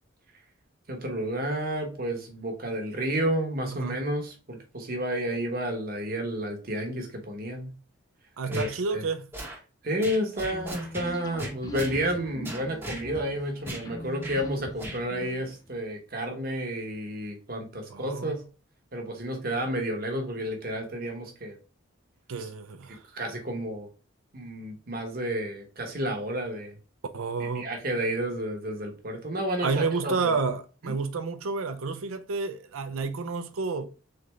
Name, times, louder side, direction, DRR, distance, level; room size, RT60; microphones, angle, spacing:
voice 1, 0.9-7.7 8.5-8.7 8.9-9.0 9.8-18.4 18.9-21.6 23.1-23.9 24.3-26.8 27.4-30.3 30.8-30.9, right 1 dB, 45° right, 0.9 m, -31 dB
voice 2, 3.7-4.0 8.4-9.3 17.9-18.4 22.3-23.0 27.1-27.7 29.6-33.9, right 4 dB, 80° right, 0.5 m, -30 dB
sound 1, 8.5-8.7 9.3-9.6 10.0-11.1 11.4-12.0 12.4-13.0 13.7-13.9 14.2-14.4 14.8-15.0, right 1 dB, 10° right, 0.8 m, -37 dB
sound 2, 10.5-15.7, left 2 dB, 20° left, 0.3 m, -41 dB
3.8 x 3.3 x 3.1 m
head